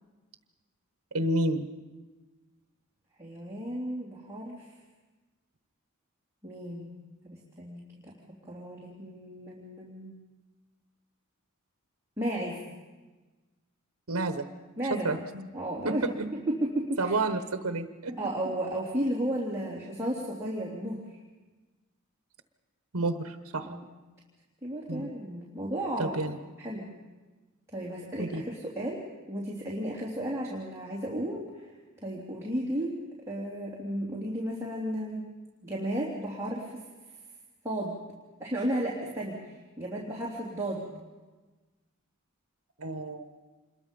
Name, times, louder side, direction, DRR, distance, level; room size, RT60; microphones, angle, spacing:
voice 1, 1.1-1.7 14.1-14.5 14.9-15.5 15.8-16.3 17.0-18.2 22.9-23.7 24.9-25.1 26.0-26.4 28.2-28.4 42.8-43.3, right 2 dB, 80° right, 8 dB, 1.1 m, -30 dB
voice 2, 3.2-4.7 6.4-6.9 7.2-7.8 8.4-10.2 12.2-12.6 14.8-15.2 15.5-16.0 16.3-17.2 18.2-21.0 23.6-23.8 24.6-26.9 27.7-29.0 29.3-31.7 32.0-32.9 33.3-35.2 35.6-36.8 37.6-37.9 38.4-40.8, right 1 dB, 15° right, -6 dB, 3.1 m, -33 dB
27.0 x 22.0 x 5.4 m, 1.2 s
head